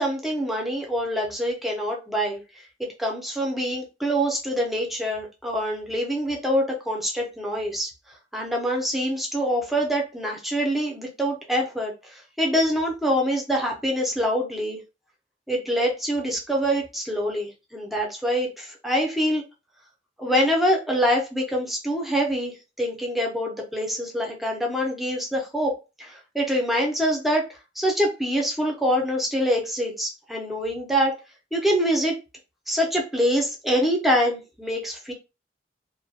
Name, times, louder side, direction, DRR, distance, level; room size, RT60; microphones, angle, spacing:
voice 1, 0.0-2.4 3.0-7.9 8.3-14.8 15.5-19.4 20.2-27.5 27.8-31.1 31.5-32.2 32.7-35.1, equal, ahead, 0 dB, 0.6 m, -25 dB
2.4 x 2.2 x 2.6 m, 0.28 s
head